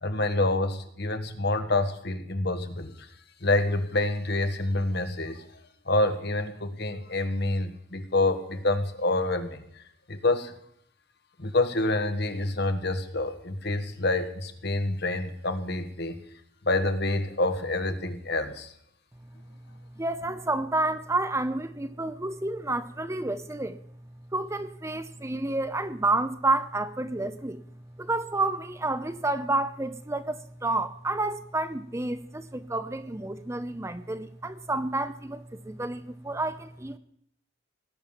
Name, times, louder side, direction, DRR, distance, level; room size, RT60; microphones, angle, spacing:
voice 1, 0.0-3.1 3.4-5.4 5.8-9.6 10.1-10.5 11.4-16.2 16.6-18.7, left 2 dB, 55° left, 8 dB, 1.6 m, -27 dB
voice 2, 20.0-23.8 24.3-27.6 28.0-37.0, right 2 dB, 15° right, 11 dB, 0.7 m, -30 dB
19.0 x 9.6 x 7.2 m, 0.67 s
head